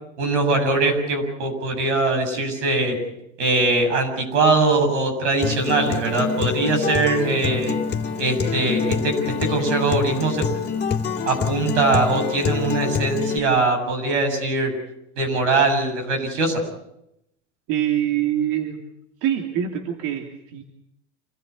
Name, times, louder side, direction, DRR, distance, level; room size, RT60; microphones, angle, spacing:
voice 1, 0.2-3.0 3.4-7.8 8.2-10.4 11.2-14.7 15.2-16.6, right 3 dB, 90° right, 5 dB, 7.6 m, -21 dB
Acoustic guitar, 5.4-13.4, left 6 dB, 30° left, 2.8 m, -26 dB
voice 2, 17.7-18.8 19.2-20.6, right 11 dB, 60° right, 3 dB, 2.8 m, -24 dB
27.5 x 15.5 x 8.4 m, 0.82 s
supercardioid pair, 100°, 34 cm